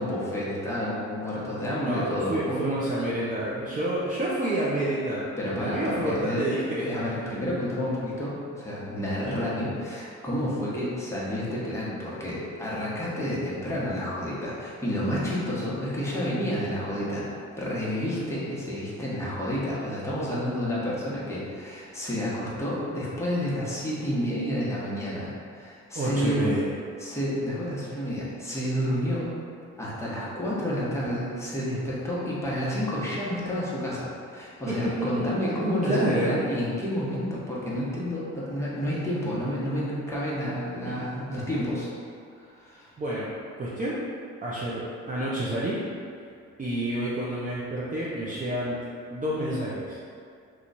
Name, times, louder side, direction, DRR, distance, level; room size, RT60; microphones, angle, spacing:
voice 1, 0.0-2.7 5.4-26.5 27.0-29.3 29.8-41.9 42.4-42.9, equal, 10° left, -8 dB, 1.0 m, -30 dB
voice 2, 1.8-5.3 5.5-7.0 25.9-26.6 34.7-36.3 40.8-41.0 43.0-43.3 43.6-44.0 44.4-44.8 45.1-45.8 46.6-48.8 49.1-50.0, right 1 dB, 25° right, -7 dB, 0.5 m, -29 dB
3.0 x 2.3 x 3.9 m, 2.3 s
cardioid pair, 90°, 30 cm